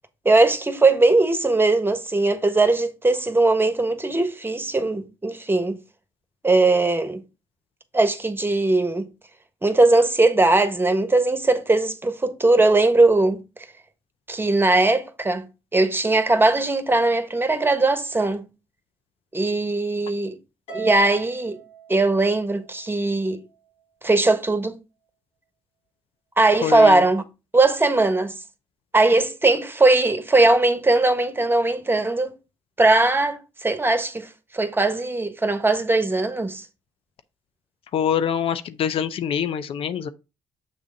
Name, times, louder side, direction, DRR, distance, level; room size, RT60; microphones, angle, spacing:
voice 1, 0.2-5.8 6.4-7.2 7.9-9.1 9.6-13.4 14.3-15.5 15.7-18.5 19.3-20.4 20.7-21.6 21.9-23.4 24.0-24.7 26.4-27.2 27.5-28.3 28.9-32.3 32.8-34.3 34.5-36.6, right 2 dB, 20° right, 1.3 m, -19 dB
Harp, 20.7-23.1, right 8 dB, 85° left, 4.6 m, -40 dB
voice 2, 26.6-27.1 37.9-40.1, left 8 dB, 60° left, 0.5 m, -25 dB
7.1 x 3.6 x 5.1 m
hypercardioid pair, 50°, 11 cm